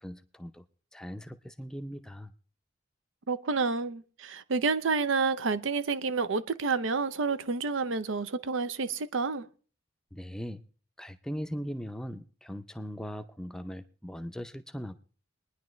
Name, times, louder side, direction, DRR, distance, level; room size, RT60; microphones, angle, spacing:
voice 1, 0.0-0.6 0.9-2.3 10.1-10.6 11.0-15.0, equal, 5° left, 0.5 m, -39 dB
voice 2, 3.3-9.5, right 4 dB, 80° right, 0.6 m, -29 dB
22.5 x 10.0 x 3.1 m
head